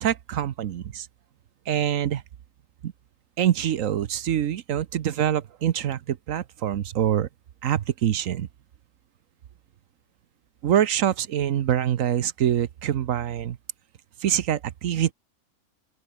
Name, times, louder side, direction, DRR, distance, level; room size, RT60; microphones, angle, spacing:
voice 1, 0.0-1.1 1.7-2.2 2.8-2.9 3.4-7.3 7.6-8.5 10.6-13.6 14.2-15.1, right 10 dB, 65° right, 1.1 m, -25 dB
open air
omnidirectional pair, 1.5 m